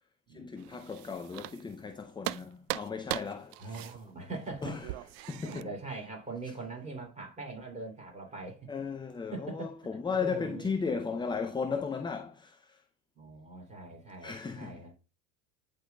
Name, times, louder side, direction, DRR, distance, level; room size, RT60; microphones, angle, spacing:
voice 1, 0.3-3.9 4.6-4.9 5.3-5.7 8.7-12.8 14.2-14.8, left 5 dB, 10° left, 0.5 m, -36 dB
sound 1, 0.6-1.9 2.2-5.6, right 17 dB, 60° right, 0.5 m, -39 dB
voice 2, 3.6-4.8 5.2-8.7 9.3-9.7 10.2-10.7 13.1-14.9, right 3 dB, 15° right, 2.9 m, -42 dB
11.5 x 4.0 x 2.3 m
hypercardioid pair, 80°, 40 cm